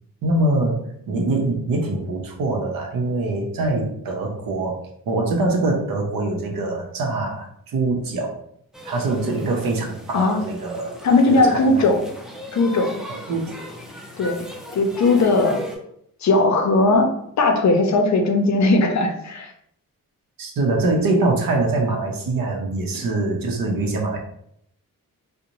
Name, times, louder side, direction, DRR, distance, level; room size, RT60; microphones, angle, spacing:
voice 1, 0.2-4.8 5.1-8.4 8.8-10.9 11.3-11.8 13.1-13.6 20.4-24.2, right 2 dB, 75° right, 0 dB, 0.7 m, -23 dB
sound 1, 8.7-15.8, equal, ahead, 0.4 m, -39 dB
voice 2, 11.0-12.0 12.5-13.0 14.2-14.5 14.7-15.7 16.2-17.1 17.4-19.5 22.9-23.0, left 2 dB, 55° left, 4 dB, 0.5 m, -18 dB
2.5 x 2.1 x 2.9 m, 0.73 s
cardioid pair, 95°, 34 cm